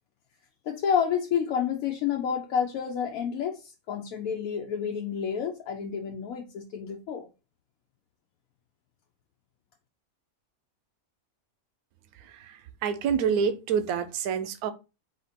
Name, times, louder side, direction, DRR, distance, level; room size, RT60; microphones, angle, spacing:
voice 1, 0.7-7.3, left 7 dB, 80° left, 1.0 m, -29 dB
voice 2, 12.1-14.7, right 7 dB, 85° right, 1.1 m, -28 dB
4.2 x 2.5 x 4.1 m
omnidirectional pair, 1.5 m